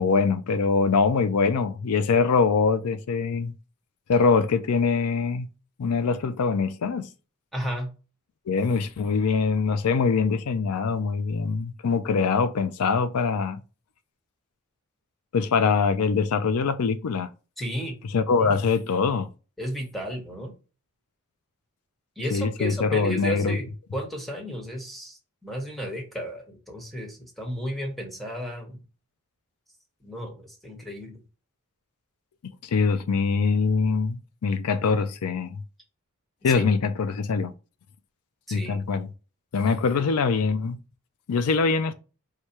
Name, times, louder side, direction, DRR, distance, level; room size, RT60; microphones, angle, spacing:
voice 1, 0.0-3.5 4.1-5.5 5.8-7.1 8.5-13.6 15.3-17.3 18.1-19.3 22.3-23.6 32.6-35.6 36.4-37.5 38.5-39.1 39.5-40.8 41.3-41.9, left 5 dB, 80° left, 0.5 m, -23 dB
voice 2, 7.5-7.9 17.6-17.9 19.6-20.5 22.2-23.7 23.9-28.8 30.0-31.2 36.5-36.6 38.5-38.8 39.9-40.0, equal, ahead, 1.2 m, -33 dB
4.8 x 2.2 x 4.2 m
head